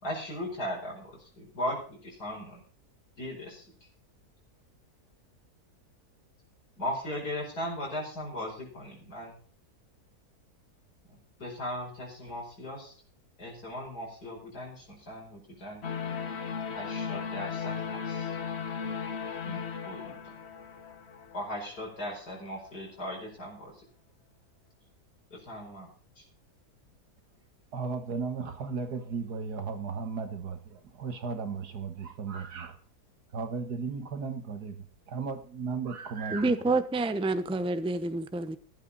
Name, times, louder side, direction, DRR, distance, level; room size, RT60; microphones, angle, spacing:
voice 1, 0.0-2.6 3.2-3.9 6.8-9.4 11.1-12.9 13.4-15.8 16.7-18.4 19.4-20.3 21.3-23.8 25.3-25.9 26.2-26.3, left 1 dB, 75° left, 5.5 m, -38 dB
sound 1, 15.8-21.9, left 6 dB, 45° left, 1.3 m, -36 dB
voice 2, 27.7-32.8 33.3-36.5, right 5 dB, 75° right, 2.0 m, -35 dB
voice 3, 36.3-38.6, right 2 dB, 5° right, 0.6 m, -28 dB
14.5 x 11.5 x 4.1 m
omnidirectional pair, 1.7 m